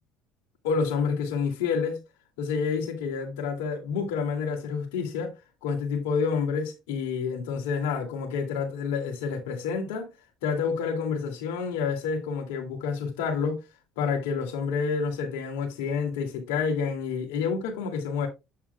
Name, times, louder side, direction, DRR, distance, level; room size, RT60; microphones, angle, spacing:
voice 1, 0.6-2.0 2.4-5.3 5.6-10.1 10.4-13.6 14.0-18.3, left 5 dB, 80° left, 2.3 m, -28 dB
8.4 x 7.2 x 2.2 m
hypercardioid pair, 75°, 0 cm